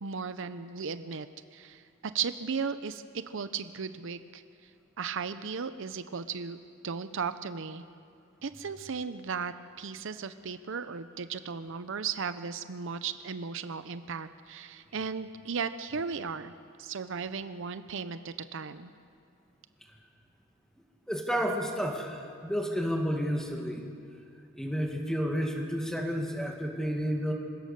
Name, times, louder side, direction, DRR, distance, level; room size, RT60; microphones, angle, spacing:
voice 1, 0.0-4.4 5.0-6.6 6.8-7.8 8.4-16.5 16.8-18.9, right 5 dB, 65° right, 11 dB, 0.6 m, -36 dB
voice 2, 21.1-23.9 24.5-27.3, equal, 5° left, 2 dB, 2.1 m, -31 dB
26.0 x 16.5 x 6.7 m, 2.4 s
head